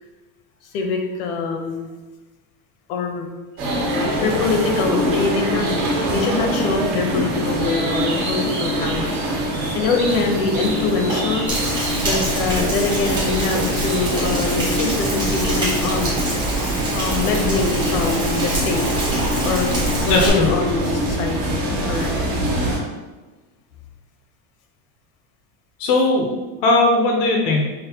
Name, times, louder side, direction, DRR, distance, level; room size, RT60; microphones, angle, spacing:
voice 1, 0.7-1.9 2.9-3.3 4.2-5.7 6.1-9.2 9.7-11.5 12.0-16.1 16.9-18.8 19.4-22.1, left 4 dB, 75° left, 3 dB, 0.8 m, -24 dB
sound 1, 3.6-22.8, right 1 dB, 55° right, 1.4 m, -24 dB
Rain, 11.5-20.3, right 1 dB, 10° right, 0.6 m, -25 dB
voice 2, 20.1-20.5 25.8-26.3 26.6-27.6, left 2 dB, 35° left, 0 dB, 0.4 m, -17 dB
5.5 x 2.1 x 2.7 m, 1.2 s
cardioid pair, 175°, 43 cm